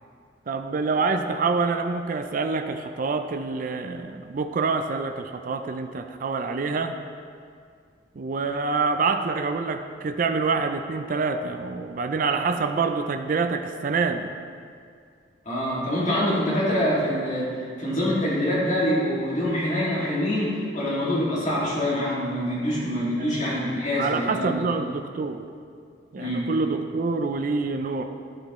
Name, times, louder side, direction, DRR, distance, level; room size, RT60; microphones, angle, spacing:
voice 1, 0.5-7.0 8.1-14.4 23.2-25.5 26.1-28.0, right 4 dB, 45° right, 7 dB, 0.4 m, -26 dB
voice 2, 15.5-24.6 26.2-26.5, equal, 40° left, -7 dB, 2.2 m, -25 dB
11.5 x 6.3 x 3.1 m, 2.2 s
head